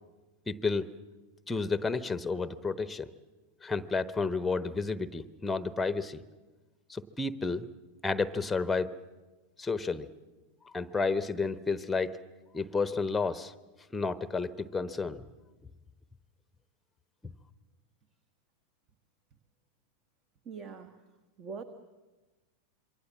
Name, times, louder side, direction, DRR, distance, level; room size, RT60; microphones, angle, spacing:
voice 1, 0.5-0.9 1.5-3.1 3.6-6.2 6.9-7.7 8.0-8.9 9.6-10.1 10.7-12.2 12.5-13.5 13.9-15.2, left 4 dB, 10° left, 15 dB, 1.0 m, -31 dB
voice 2, 20.4-21.0 21.4-21.6, right 5 dB, 30° right, 10 dB, 1.4 m, -42 dB
27.0 x 23.5 x 7.5 m, 1.2 s
figure-of-eight pair, 90°, 0 cm